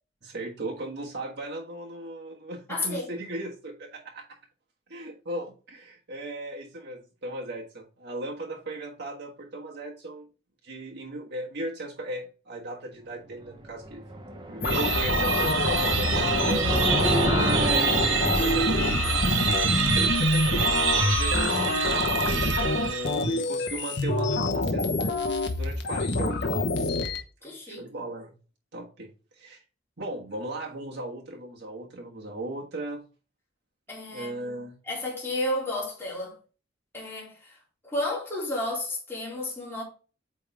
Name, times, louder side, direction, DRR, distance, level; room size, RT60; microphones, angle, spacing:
voice 1, 0.2-4.2 4.9-10.3 10.6-14.0 14.5-16.7 17.5-20.7 21.0-22.1 22.6-27.0 27.7-28.3 28.7-29.1 29.4-29.6 30.0-33.0 34.1-34.7, right 1 dB, 60° right, 1.4 m, -37 dB
voice 2, 2.7-3.1 27.4-27.8 33.9-34.5 34.9-36.3 36.9-37.6 37.8-39.8, left 1 dB, 15° left, 2.4 m, -32 dB
sound 1, 13.5-20.8, right 1 dB, 25° right, 0.8 m, -31 dB
sound 2, 14.6-27.2, left 2 dB, 65° left, 1.0 m, -26 dB
sound 3, 14.6-23.3, right 6 dB, 85° right, 1.0 m, -27 dB
8.5 x 3.5 x 3.4 m
head